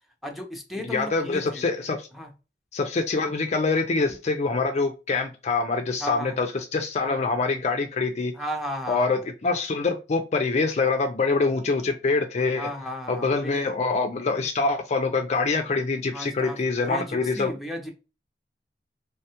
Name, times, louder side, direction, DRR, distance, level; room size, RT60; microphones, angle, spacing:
voice 1, 0.2-1.7 2.1-2.3 6.0-6.4 8.3-9.2 12.6-13.7 16.1-16.6 16.9-17.9, equal, ahead, 0.6 m, -34 dB
voice 2, 0.8-2.1 2.7-8.3 8.9-12.7 13.1-17.5, left 3 dB, 40° left, 0.4 m, -25 dB
3.4 x 2.3 x 2.8 m
head